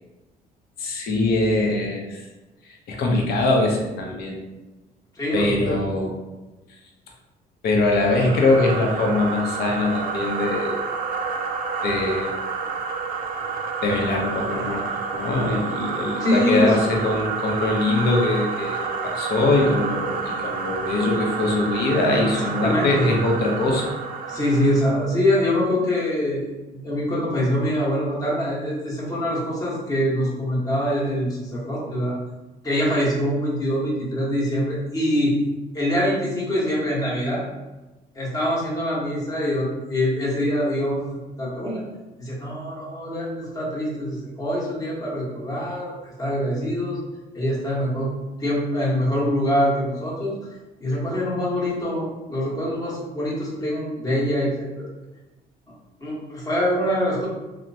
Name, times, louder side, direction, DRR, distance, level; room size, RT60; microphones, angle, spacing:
voice 1, 0.8-2.2 2.9-4.4 5.3-6.1 7.6-10.8 11.8-12.4 13.8-14.8 15.1-23.9, left 2 dB, 65° left, 0 dB, 0.7 m, -22 dB
voice 2, 5.2-5.8 14.5-14.8 16.2-16.8 22.3-23.1 24.2-26.5 26.8-32.2 32.6-35.4 35.7-37.4 38.1-41.1 41.4-41.8 42.2-47.0 47.3-48.1 48.4-50.4 50.8-54.9 56.0-57.3, equal, 20° left, -6 dB, 1.0 m, -24 dB
sound 1, 7.9-24.9, right 5 dB, 55° right, 0.4 m, -29 dB
2.9 x 2.0 x 2.6 m, 1.1 s
cardioid pair, 110°, 17 cm